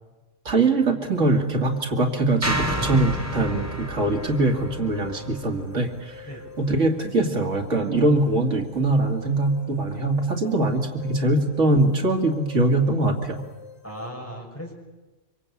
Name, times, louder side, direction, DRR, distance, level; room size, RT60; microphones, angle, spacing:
voice 1, 0.4-6.3 6.6-13.4, right 2 dB, 80° right, 3 dB, 2.7 m, -22 dB
sound 1, 1.1-14.1, left 7 dB, 60° left, 5.1 m, -46 dB
sound 2, 2.4-6.7, right 1 dB, 10° right, 3.2 m, -31 dB
voice 2, 13.8-14.7, equal, 10° left, 0 dB, 6.0 m, -37 dB
26.0 x 25.0 x 8.5 m, 1.2 s
omnidirectional pair, 1.3 m